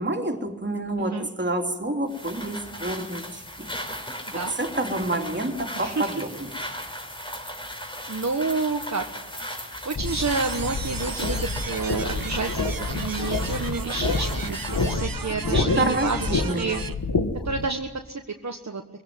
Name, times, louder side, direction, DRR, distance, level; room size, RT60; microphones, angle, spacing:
voice 1, 0.0-3.7 4.3-6.5 15.3-16.8, right 1 dB, 30° right, 3 dB, 3.3 m, -28 dB
sound 1, 2.1-15.1, equal, 15° left, 4.3 m, -37 dB
voice 2, 5.7-6.2 8.1-12.7 12.9-16.8 17.4-18.8, right 3 dB, 50° right, 4 dB, 1.5 m, -30 dB
sound 2, 9.9-17.7, left 3 dB, 70° left, 1.9 m, -28 dB
sound 3, 10.0-16.9, right 6 dB, 70° right, 1.1 m, -36 dB
23.0 x 17.0 x 9.3 m, 1.1 s
wide cardioid pair, 55°, 36 cm